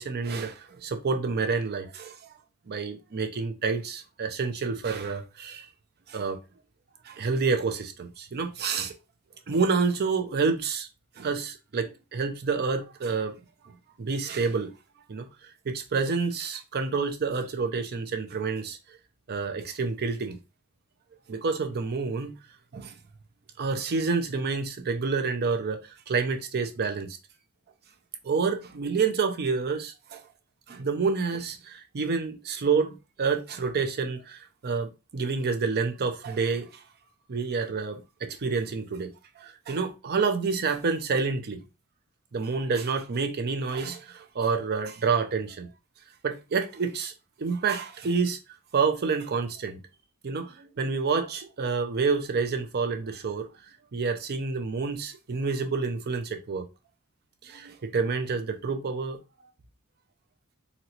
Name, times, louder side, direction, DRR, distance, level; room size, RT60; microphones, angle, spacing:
voice 1, 0.0-2.2 2.7-5.7 6.1-6.4 7.0-8.9 9.5-10.9 11.2-13.4 14.0-14.7 15.1-15.3 15.7-18.8 19.3-20.4 21.3-22.3 22.7-23.0 23.6-27.2 28.2-30.2 30.7-36.8 37.3-41.6 42.3-45.7 46.2-47.1 47.4-48.4 48.7-49.8 50.2-53.5 53.9-56.7 57.4-59.2, right 4 dB, 45° right, 0.5 m, -28 dB
4.0 x 2.0 x 2.8 m
head